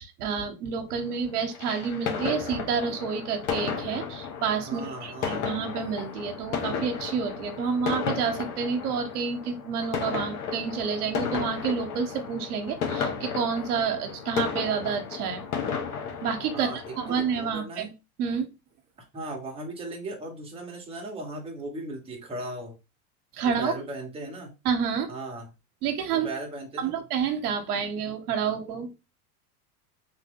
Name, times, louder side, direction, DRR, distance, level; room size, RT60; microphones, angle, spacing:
voice 1, 0.0-15.4 16.2-16.7 17.0-17.9 18.2-18.5 23.3-23.7 24.6-25.1 25.8-26.3 26.8-28.9, right 6 dB, 80° right, 6 dB, 0.9 m, -29 dB
sound 1, 1.4-17.5, left 6 dB, 80° left, 0.9 m, -33 dB
voice 2, 4.7-5.5 16.5-17.9 19.1-22.8 23.6-24.5 25.1-25.5 26.1-26.9, right 1 dB, 15° right, 0 dB, 0.9 m, -37 dB
3.0 x 2.0 x 3.5 m, 0.27 s
hypercardioid pair, 110°, 45 cm